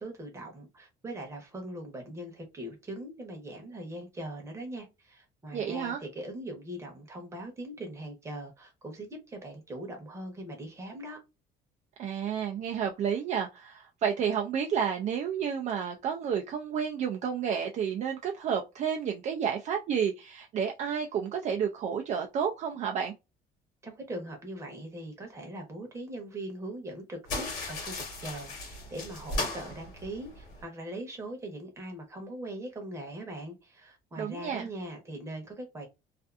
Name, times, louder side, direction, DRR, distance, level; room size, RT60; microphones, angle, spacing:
voice 1, 0.0-11.2 23.8-35.9, right 1 dB, 15° right, 0.8 m, -41 dB
voice 2, 5.5-6.0 12.0-23.1 34.2-34.7, right 7 dB, 40° right, 0.4 m, -31 dB
sound 1, 27.3-30.6, left 2 dB, 50° left, 1.2 m, -36 dB
2.5 x 2.5 x 2.3 m
cardioid pair, 165°, 18 cm